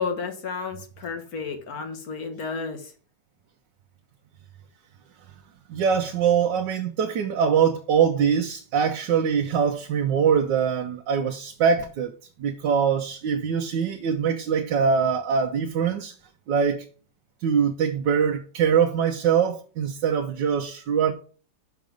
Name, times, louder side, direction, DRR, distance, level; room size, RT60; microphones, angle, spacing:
voice 1, 0.0-2.9, left 5 dB, 60° left, 1.8 m, -32 dB
voice 2, 5.7-12.1 12.4-16.1 16.5-16.8 17.4-21.1, right 7 dB, 90° right, 1.4 m, -23 dB
6.2 x 5.8 x 5.1 m
omnidirectional pair, 1.9 m